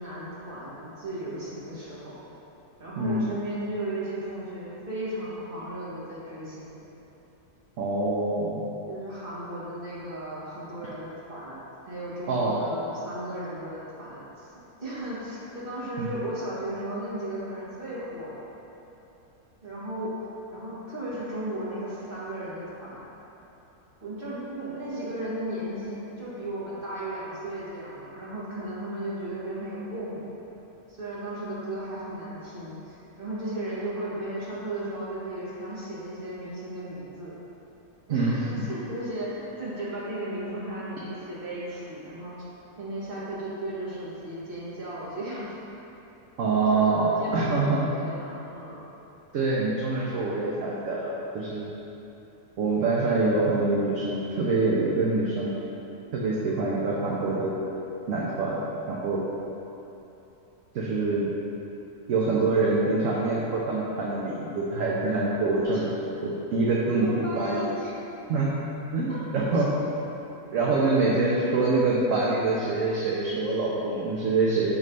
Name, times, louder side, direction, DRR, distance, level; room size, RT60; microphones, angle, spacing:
voice 1, 0.0-2.2 2.8-6.8 8.2-8.3 8.8-18.5 19.6-23.0 24.0-30.4 30.9-37.3 38.1-42.3 42.8-45.6 46.6-48.8 65.7-65.8 66.9-67.9 69.5-69.6, right 1 dB, 35° right, -9 dB, 1.8 m, -35 dB
voice 2, 3.0-3.3 7.8-8.6 12.3-12.6 16.0-16.1 38.1-38.6 46.4-47.9 49.3-51.7 52.6-55.5 56.1-57.5 58.1-58.6 58.9-59.2 60.7-61.3 62.1-65.9 66.2-67.7 68.3-68.5 68.9-69.7 70.5-74.8, right 3 dB, 60° right, -5 dB, 1.0 m, -25 dB
7.4 x 3.2 x 5.3 m, 3.0 s
omnidirectional pair, 1.7 m